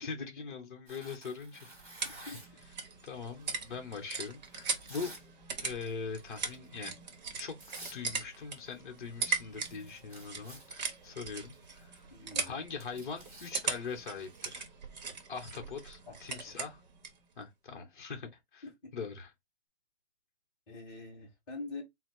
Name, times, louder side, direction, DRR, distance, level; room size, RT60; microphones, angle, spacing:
voice 1, 0.0-1.7 2.2-2.4 3.0-5.1 5.6-7.0 7.4-7.6 7.9-11.9 12.4-14.6 15.3-16.8 17.4-18.6 18.9-19.3, left 5 dB, 45° left, 1.0 m, -42 dB
Tearing, 0.9-2.6 3.4-5.3 5.6-5.9 6.3-6.6 7.3-7.4 7.6-8.0 8.3-8.8 9.0-9.1 9.4-14.6, right 2 dB, 10° right, 0.9 m, -52 dB
sound 1, 1.4-17.2, right 5 dB, 40° right, 0.8 m, -40 dB
voice 2, 2.0-2.4 12.1-12.6 16.1-16.6 18.8-18.9 20.7-21.8, left 3 dB, 10° left, 1.3 m, -45 dB
4.0 x 2.0 x 4.3 m
hypercardioid pair, 170°, 35 cm